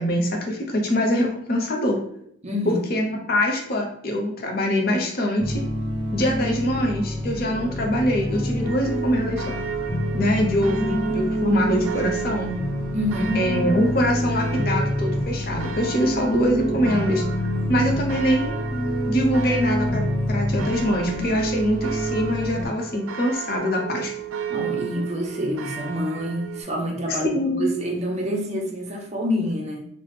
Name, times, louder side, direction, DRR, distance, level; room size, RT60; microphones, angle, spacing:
voice 1, 0.0-2.0 2.6-5.6 6.1-9.6 10.1-12.6 13.3-17.2 17.7-18.5 19.1-20.0 20.3-24.1 27.1-27.7, equal, 45° left, 1 dB, 0.6 m, -23 dB
voice 2, 2.4-2.8 12.9-13.4 16.6-17.1 24.5-29.9, equal, 30° right, 0 dB, 0.5 m, -27 dB
sound 1, 5.4-22.7, equal, 10° right, 1.0 m, -27 dB
sound 2, 8.6-26.6, right 8 dB, 90° right, 0.4 m, -33 dB
3.2 x 2.0 x 3.2 m, 0.69 s
head